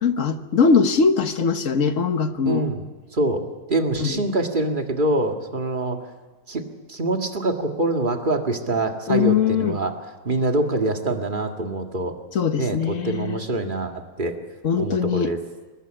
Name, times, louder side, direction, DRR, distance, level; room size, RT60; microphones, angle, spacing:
voice 1, 0.0-2.6 4.0-4.2 9.1-9.8 12.3-13.4 14.6-15.3, left 5 dB, 50° left, 9 dB, 1.5 m, -21 dB
voice 2, 2.5-2.8 3.1-3.4 3.7-6.0 6.5-6.6 6.9-9.9 10.3-12.1 12.6-13.9 14.2-14.3 14.8-15.4, right 2 dB, 30° right, 4 dB, 2.0 m, -24 dB
23.0 x 20.0 x 8.9 m, 1.3 s
omnidirectional pair, 1.8 m